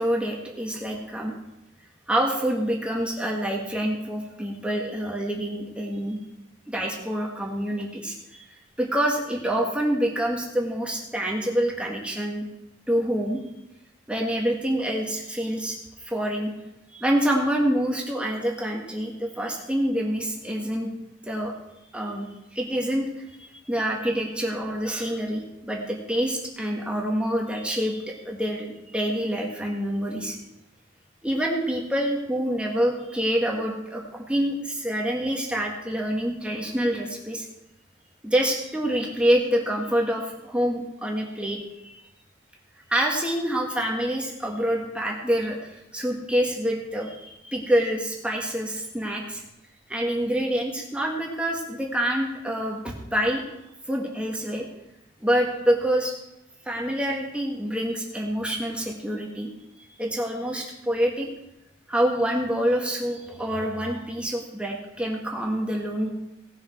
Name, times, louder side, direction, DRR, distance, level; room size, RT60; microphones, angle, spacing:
voice 1, 0.0-1.3 2.1-6.2 6.7-8.5 8.8-12.5 12.9-13.4 14.1-15.8 16.0-16.5 16.9-20.9 21.2-21.5 21.9-30.4 31.2-37.5 38.2-42.0 42.9-49.4 49.9-53.4 53.9-54.6 55.2-56.1 56.6-59.5 60.0-61.3 61.9-66.1, equal, 5° right, -1 dB, 1.7 m, -26 dB
18.0 x 7.1 x 4.6 m, 0.87 s
head